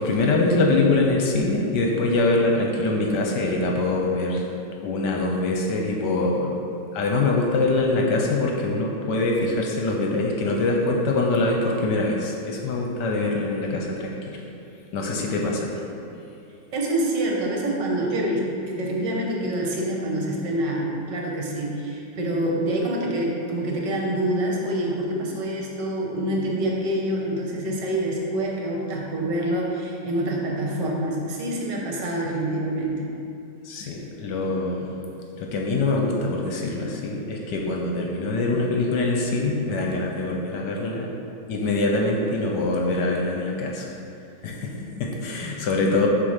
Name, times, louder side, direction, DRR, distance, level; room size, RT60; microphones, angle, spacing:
voice 1, 0.0-4.4 4.8-6.5 6.9-14.4 14.9-15.8 33.6-34.9 35.4-41.1 41.5-43.9 44.4-46.1, left 2 dB, 70° left, 0 dB, 1.2 m, -24 dB
voice 2, 16.7-33.1, right 1 dB, 70° right, -2 dB, 1.6 m, -26 dB
7.8 x 3.1 x 5.6 m, 2.6 s
omnidirectional pair, 2.1 m